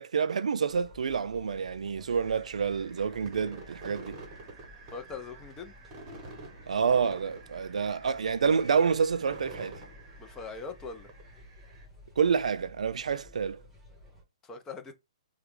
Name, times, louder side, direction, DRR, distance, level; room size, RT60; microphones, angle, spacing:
voice 1, 0.0-4.2 6.7-9.8 12.2-13.6, right 6 dB, 80° right, 0.3 m, -28 dB
sound 1, 0.7-14.2, left 1 dB, 5° right, 1.3 m, -54 dB
sound 2, 2.1-11.9, right 2 dB, 25° right, 1.0 m, -48 dB
voice 2, 4.9-5.7 10.2-11.1 14.4-14.9, left 5 dB, 15° left, 0.6 m, -41 dB
3.3 x 2.2 x 3.2 m
hypercardioid pair, 150°, 4 cm